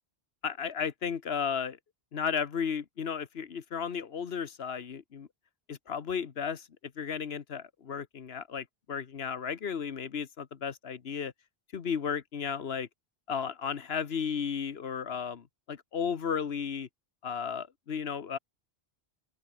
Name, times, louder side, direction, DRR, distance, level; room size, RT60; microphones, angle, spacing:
voice 1, 0.4-1.8 2.1-5.3 5.7-6.7 7.0-11.3 11.7-12.9 13.3-16.9 17.2-18.4, left 7 dB, 75° left, 1.3 m, -34 dB
open air
omnidirectional pair, 1.1 m